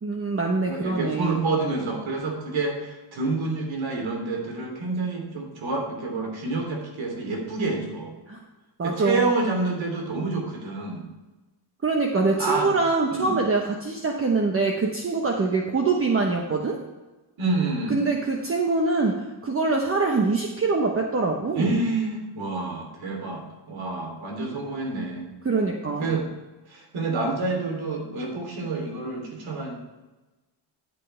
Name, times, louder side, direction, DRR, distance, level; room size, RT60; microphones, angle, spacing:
voice 1, 0.0-1.4 8.3-8.4 8.8-9.3 11.8-16.8 17.9-21.7 25.4-26.2, right 3 dB, 30° right, 1 dB, 1.1 m, -24 dB
voice 2, 0.6-8.1 8.8-11.0 12.4-12.7 13.1-13.3 17.4-18.0 21.5-25.3 26.0-26.3 26.7-29.7, right 3 dB, 75° right, 1 dB, 3.2 m, -28 dB
13.5 x 8.1 x 3.4 m, 1.1 s
cardioid pair, 130°, 46 cm